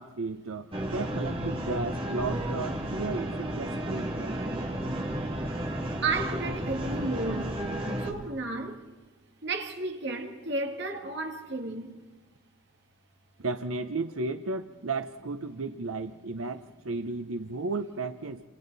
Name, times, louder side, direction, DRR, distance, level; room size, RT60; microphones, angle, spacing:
voice 1, 0.0-4.4 13.4-18.4, right 3 dB, 85° right, 0.8 m, -34 dB
sound 1, 0.7-8.1, right 1 dB, 25° right, 2.4 m, -32 dB
voice 2, 6.0-7.6 8.0-8.8 9.4-12.0, right 3 dB, 55° right, 2.1 m, -33 dB
29.0 x 27.5 x 4.1 m
head